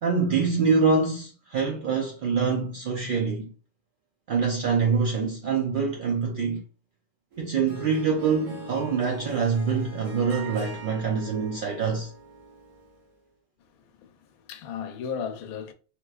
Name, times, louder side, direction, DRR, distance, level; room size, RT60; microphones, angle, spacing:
voice 1, 0.0-3.5 4.3-6.6 7.4-12.1, right 5 dB, 65° right, 0.5 m, -25 dB
Harp, 7.3-13.1, right 3 dB, 85° right, 1.3 m, -42 dB
voice 2, 14.0-15.7, left 7 dB, 85° left, 1.0 m, -35 dB
3.5 x 3.0 x 2.4 m
omnidirectional pair, 1.5 m